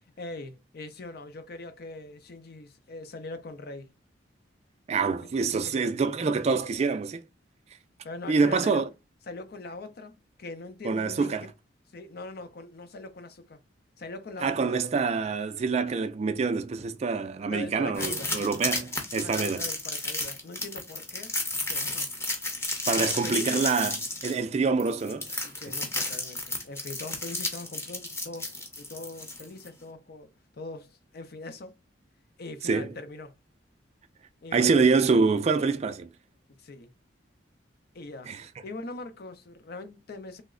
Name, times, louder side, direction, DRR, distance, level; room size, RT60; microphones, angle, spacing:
voice 1, 0.2-3.9 5.4-6.0 8.0-8.9 9.3-11.5 11.9-13.6 14.0-14.8 17.5-18.5 19.1-21.3 21.7-22.1 23.0-23.7 25.4-28.5 28.8-30.3 30.5-31.7 32.4-33.3 34.4-34.8 36.6-36.9 37.9-38.3 38.6-40.4, left 2 dB, 55° left, 0.5 m, -41 dB
voice 2, 4.9-7.2 8.3-8.8 10.8-11.4 14.4-19.6 22.9-24.0 24.2-25.4 32.6-32.9 34.5-36.1 38.3-38.4, right 4 dB, 35° right, 0.3 m, -26 dB
sound 1, 17.9-29.7, left 2 dB, 15° left, 0.6 m, -32 dB
3.0 x 2.1 x 3.6 m
head